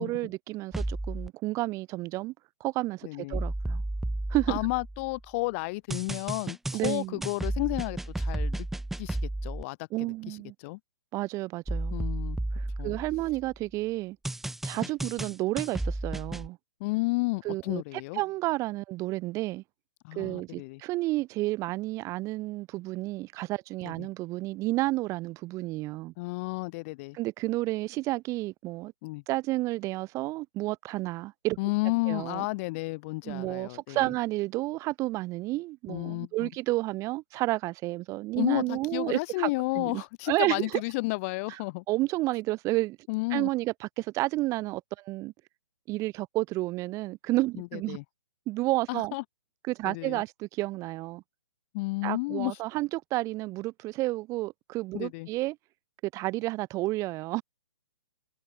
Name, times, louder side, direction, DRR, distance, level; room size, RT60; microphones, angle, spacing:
voice 1, 0.0-2.3 2.6-3.8 4.3-4.6 6.7-7.2 9.9-10.5 11.1-12.0 12.6-14.2 14.6-16.6 17.4-17.8 18.2-19.6 20.1-26.1 27.1-28.9 29.3-31.6 32.1-32.5 33.3-39.5 39.8-40.8 41.9-43.0 43.3-45.3 45.9-48.0 48.5-49.1 49.6-51.2 52.0-55.6 56.1-57.4, right 19 dB, 25° right, 1.8 m, -31 dB
sound 1, 0.7-1.3 3.3-5.2 5.9-9.6 11.7-13.5 14.2-16.5, right 1 dB, ahead, 0.8 m, -33 dB
voice 2, 3.0-3.4 4.5-8.7 9.0-10.8 11.9-12.4 12.8-12.9 14.8-14.9 16.8-18.2 20.0-20.8 23.8-24.1 26.2-27.2 29.0-29.2 31.6-34.0 35.9-36.5 38.4-41.8 43.1-43.5 47.6-48.0 48.9-49.2 49.8-50.2 51.7-52.5 54.9-55.3, left 25 dB, 30° left, 1.6 m, -32 dB
hypercardioid pair, 150°, 14 cm